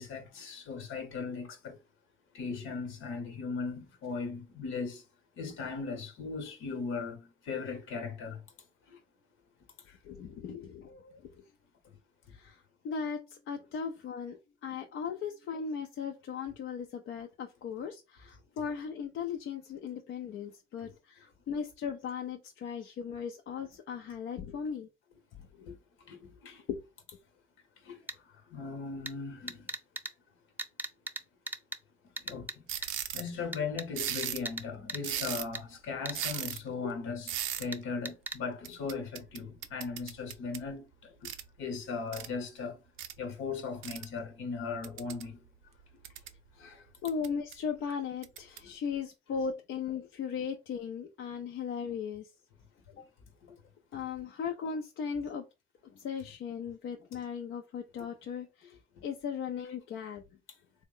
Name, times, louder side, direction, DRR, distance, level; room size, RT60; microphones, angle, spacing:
voice 1, 0.0-1.8 2.3-5.0 5.4-8.5 8.9-9.0 9.8-10.0 11.8-12.0 25.6-26.7 27.8-29.7 32.2-41.3 41.6-42.8 43.2-45.5 46.5-46.9 48.6-48.8 53.9-54.0 58.9-59.0, left 4 dB, 90° left, 1.0 m, -38 dB
voice 2, 10.0-11.5 12.3-24.9 25.5-25.7 26.7-26.8 36.8-36.9 47.0-52.3 52.9-53.1 53.9-55.4 55.8-58.8 59.0-60.2, left 6 dB, 70° left, 0.5 m, -37 dB
sound 1, 28.1-28.2 29.1-29.2 29.5-30.1 30.6-31.2 31.5-31.8 32.2-32.5 32.8-32.9 33.5-34.6 34.9-35.0 35.5-35.6 36.1-36.3 37.7-37.8 38.1-38.4, right 2 dB, 10° right, 0.4 m, -37 dB
sound 2, 32.7-33.3 34.0-34.5 35.0-35.6 36.1-36.6 37.3-37.7 38.6-40.7 41.2-41.5 42.1-42.3 43.0-43.1 43.8-44.1 44.8-45.3 45.8-46.4 47.1-47.5 48.2-48.6, right 11 dB, 90° right, 0.5 m, -37 dB
3.5 x 2.1 x 3.7 m
cardioid pair, 90°, 20 cm